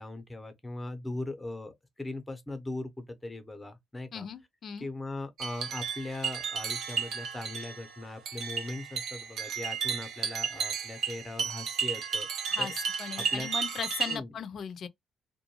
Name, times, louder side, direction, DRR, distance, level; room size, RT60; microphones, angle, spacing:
voice 1, 0.0-4.3 4.8-12.3 12.6-12.7 13.3-13.5 14.1-14.3, left 2 dB, 15° left, 0.8 m, -39 dB
voice 2, 4.1-4.9 12.5-12.7 13.0-14.9, left 7 dB, 60° left, 0.5 m, -38 dB
sound 1, 5.4-14.2, right 6 dB, 75° right, 0.8 m, -33 dB
2.5 x 2.2 x 2.9 m
cardioid pair, 90°, 0 cm